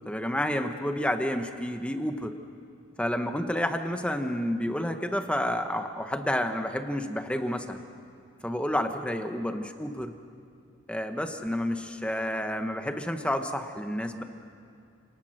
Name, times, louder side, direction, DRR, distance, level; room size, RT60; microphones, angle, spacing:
voice 1, 0.1-2.3 3.0-7.8 8.4-10.1 10.9-14.2, left 1 dB, 5° left, 7 dB, 1.0 m, -30 dB
28.5 x 19.0 x 6.5 m, 2.4 s
head